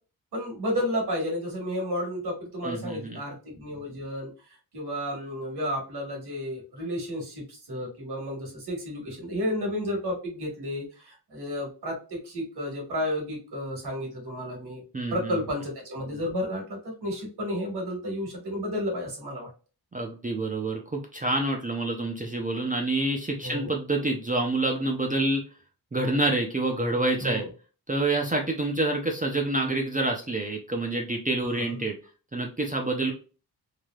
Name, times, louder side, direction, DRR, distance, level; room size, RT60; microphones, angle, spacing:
voice 1, 0.3-4.3 4.7-14.8 15.1-19.5 23.4-23.7 27.2-27.5 31.4-31.8, equal, 75° right, 0 dB, 1.6 m, -32 dB
voice 2, 2.6-3.2 14.9-15.3 19.9-25.4 25.9-27.4 27.9-31.9 32.3-33.1, right 2 dB, 20° right, 1 dB, 0.4 m, -27 dB
3.3 x 2.6 x 2.3 m, 0.35 s
wide cardioid pair, 170°, 40 cm